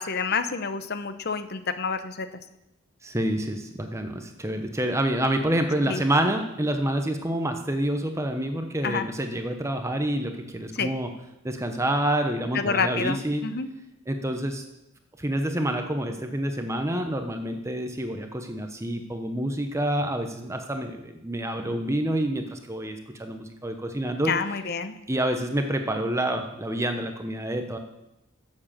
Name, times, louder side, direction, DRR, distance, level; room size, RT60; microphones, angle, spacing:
voice 1, 0.0-2.3 5.9-6.0 8.8-9.1 10.8-10.9 12.5-13.7 24.3-24.9, left 5 dB, 50° left, 11 dB, 0.8 m, -28 dB
voice 2, 3.0-11.1 11.4-13.4 14.1-14.6 15.2-24.3 25.1-27.8, right 1 dB, 15° right, 5 dB, 0.9 m, -27 dB
11.5 x 7.5 x 7.4 m, 0.87 s
head